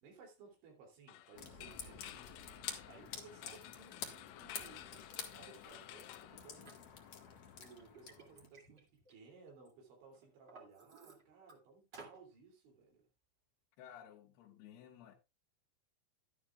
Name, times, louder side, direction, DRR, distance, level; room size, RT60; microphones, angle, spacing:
voice 1, 0.0-2.5 2.9-6.8 7.6-13.0, right 4 dB, 80° right, 5.3 m, -59 dB
sound 1, 1.1-7.1, left 13 dB, 90° left, 3.3 m, -54 dB
sound 2, 1.3-8.5, left 7 dB, 50° left, 2.3 m, -49 dB
Liquid, 6.7-6.8 7.3-9.7 10.1-11.5 11.9-12.2, right 3 dB, 30° right, 2.4 m, -58 dB
voice 2, 13.8-15.2, left 9 dB, 65° left, 3.3 m, -55 dB
12.0 x 11.5 x 2.4 m
omnidirectional pair, 5.3 m